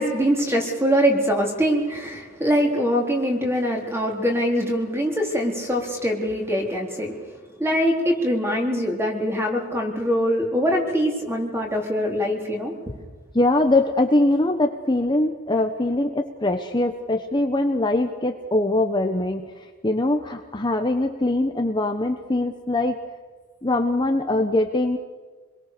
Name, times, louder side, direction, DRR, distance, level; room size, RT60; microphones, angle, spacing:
voice 1, 0.0-7.2 7.6-12.7, equal, 10° right, 1 dB, 4.0 m, -23 dB
voice 2, 13.3-22.9 23.6-25.0, left 2 dB, 20° left, 4 dB, 1.1 m, -22 dB
27.0 x 22.0 x 6.9 m, 1.4 s
head